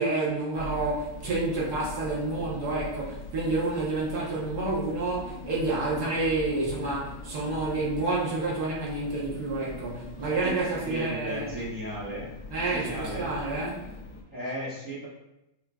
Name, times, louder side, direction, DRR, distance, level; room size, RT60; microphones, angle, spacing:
voice 1, 0.0-11.6 12.5-13.8, right 2 dB, 55° right, -5 dB, 1.5 m, -29 dB
sound 1, 0.5-14.2, left 3 dB, 80° left, 1.5 m, -42 dB
voice 2, 10.8-12.3 12.7-13.3 14.3-15.1, right 1 dB, 15° right, -8 dB, 0.7 m, -34 dB
5.8 x 2.7 x 2.3 m, 0.92 s
omnidirectional pair, 2.2 m